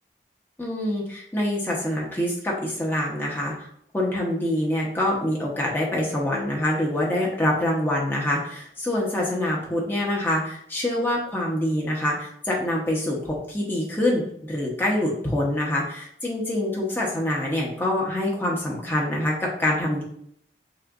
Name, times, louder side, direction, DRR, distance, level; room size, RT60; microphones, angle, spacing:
voice 1, 0.6-3.7 3.9-20.0, left 1 dB, 10° left, -4 dB, 0.9 m, -25 dB
6.3 x 2.5 x 2.5 m, 0.68 s
head